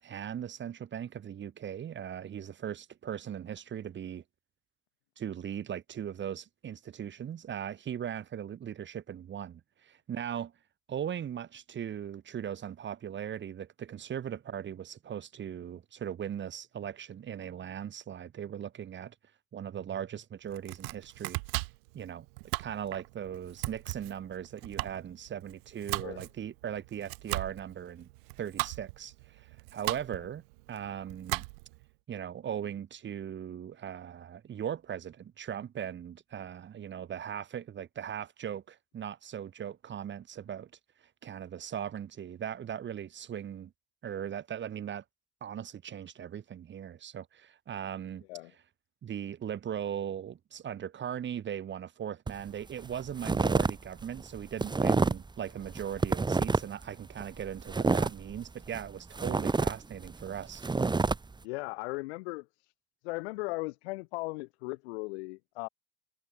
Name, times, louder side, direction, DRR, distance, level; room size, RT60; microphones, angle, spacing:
voice 1, 0.0-4.2 5.2-10.5 10.9-19.2 19.5-21.4 21.9-22.3 22.6-28.1 28.4-30.4 30.7-31.4 32.1-40.7 41.2-43.7 44.0-45.0 45.4-48.2 49.0-60.6, right 9 dB, 35° right, 6.9 m, -39 dB
Domestic sounds home sounds, 20.5-31.8, right 29 dB, 65° right, 1.7 m, -38 dB
sound 1, 52.3-52.5 52.8-53.7 54.0-55.3 55.7-56.8 57.2-58.9 59.1-61.2, right 4 dB, 15° right, 2.4 m, -28 dB
voice 2, 61.4-62.7 63.0-65.7, left 24 dB, 70° left, 4.0 m, -37 dB
hypercardioid pair, 100°, 33 cm